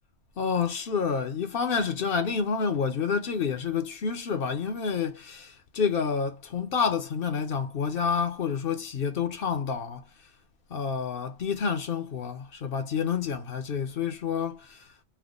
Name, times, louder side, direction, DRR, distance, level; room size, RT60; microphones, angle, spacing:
voice 1, 0.4-10.0 10.7-14.9, left 6 dB, 60° left, 0.7 m, -29 dB
3.5 x 2.1 x 3.6 m
omnidirectional pair, 1.2 m